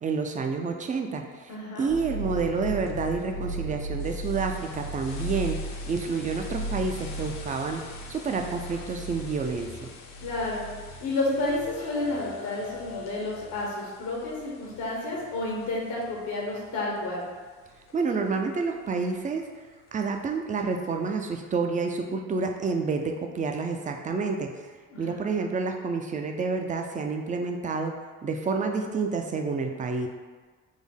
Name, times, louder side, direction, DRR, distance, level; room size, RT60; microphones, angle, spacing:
voice 1, 0.0-5.6 5.9-7.8 8.1-9.7 17.9-19.5 19.9-24.7 25.0-27.9 28.2-30.1, right 4 dB, 25° right, 4 dB, 0.4 m, -29 dB
voice 2, 1.5-1.9 10.2-10.6 11.0-17.2 24.9-25.2, left 2 dB, 90° left, -3 dB, 1.0 m, -30 dB
sound 1, 1.9-16.7 17.2-17.3 17.9-18.0 20.6-20.7, equal, 60° left, 0.5 m, -37 dB
3.6 x 2.0 x 3.5 m, 1.4 s
cardioid pair, 90°, 30 cm